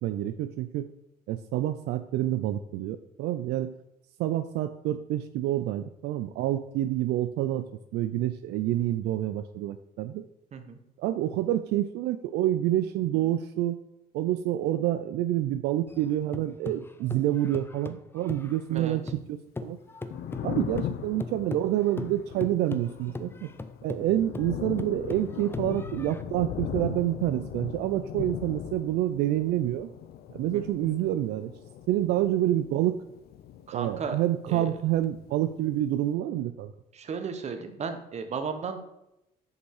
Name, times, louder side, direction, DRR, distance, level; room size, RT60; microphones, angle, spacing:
voice 1, 0.0-0.9 1.3-3.7 4.2-10.2 11.0-13.8 14.1-19.0 19.3-19.8 20.4-23.5 23.8-29.9 30.3-31.5 31.9-33.0 33.7-36.7, right 13 dB, 80° right, 10 dB, 0.4 m, -28 dB
sound 1, 15.9-19.3 19.6-26.2, left 3 dB, 15° left, 0.5 m, -39 dB
Thunder, 19.9-34.3 34.6-35.8, left 10 dB, 65° left, 0.5 m, -39 dB
voice 2, 33.7-34.2 34.5-34.7 36.9-38.8, right 5 dB, 40° right, 7 dB, 1.0 m, -34 dB
6.8 x 5.2 x 4.8 m, 0.86 s
cardioid pair, 110°, 17 cm